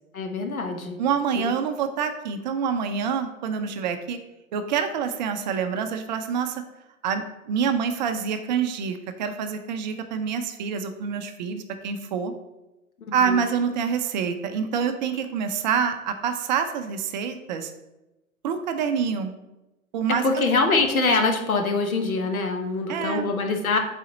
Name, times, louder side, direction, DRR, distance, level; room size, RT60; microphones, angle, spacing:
voice 1, 0.1-1.0 1.3-1.5 13.2-13.4 20.1-23.8, left 3 dB, 80° left, 5 dB, 1.1 m, -24 dB
voice 2, 1.0-4.2 4.5-6.6 7.0-12.3 13.1-17.7 18.4-19.3 19.9-20.2 22.9-23.3, right 7 dB, 35° right, 8 dB, 0.5 m, -26 dB
7.5 x 4.1 x 3.9 m, 1.0 s
figure-of-eight pair, 105°, 42 cm